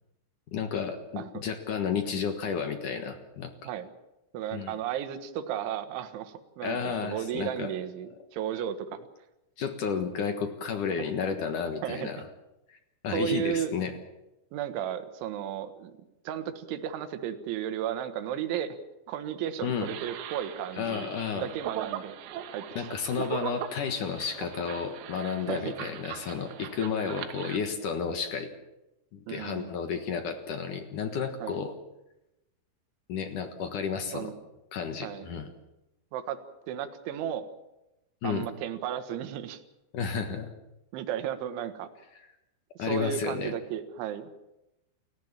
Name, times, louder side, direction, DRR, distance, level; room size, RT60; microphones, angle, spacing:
voice 1, 0.5-3.7 4.5-4.8 6.6-7.7 9.6-12.2 12.7-12.8 13.0-13.9 19.6-19.9 20.8-21.5 22.7-28.5 29.1-31.7 33.1-34.3 34.7-35.5 38.2-38.5 39.9-40.5 42.8-43.5, left 6 dB, 65° left, 6 dB, 2.1 m, -32 dB
voice 2, 4.3-9.1 11.8-12.1 13.1-13.7 14.5-15.9 16.3-18.8 19.1-22.2 22.5-23.3 25.5-25.7 29.3-29.7 31.4-31.6 34.1-34.4 35.0-35.3 36.1-36.4 36.7-37.5 38.2-39.6 40.9-41.9 42.8-44.3, right 10 dB, 75° right, 8 dB, 3.7 m, -34 dB
sound 1, 19.8-27.6, right 10 dB, 90° right, 4.0 m, -40 dB
29.0 x 15.0 x 7.4 m, 0.94 s
omnidirectional pair, 5.7 m